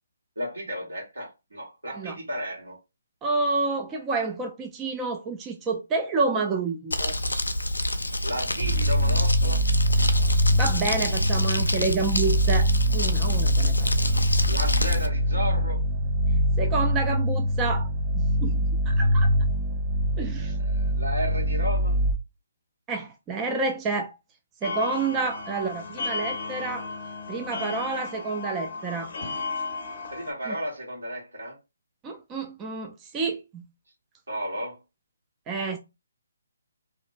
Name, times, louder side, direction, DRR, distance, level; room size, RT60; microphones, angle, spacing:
voice 1, 0.4-2.8 8.2-9.6 14.0-14.1 14.5-15.8 20.4-22.0 30.1-31.6 34.3-34.8, equal, 80° right, 1.3 m, -33 dB
voice 2, 3.2-7.2 10.5-13.9 16.6-17.9 18.1-18.6 18.9-19.3 20.2-20.5 22.9-24.1 24.6-26.9 27.3-29.1 30.5-30.6 32.0-33.6 35.5-35.8, right 4 dB, 15° right, 0.3 m, -29 dB
Crumpling crinkling, 6.9-15.1, left 1 dB, 90° left, 0.3 m, -28 dB
sound 1, 8.6-22.1, equal, 55° right, 0.7 m, -24 dB
sound 2, 24.6-30.3, left 3 dB, 50° left, 0.6 m, -34 dB
2.5 x 2.1 x 2.5 m
figure-of-eight pair, 145°, 0 cm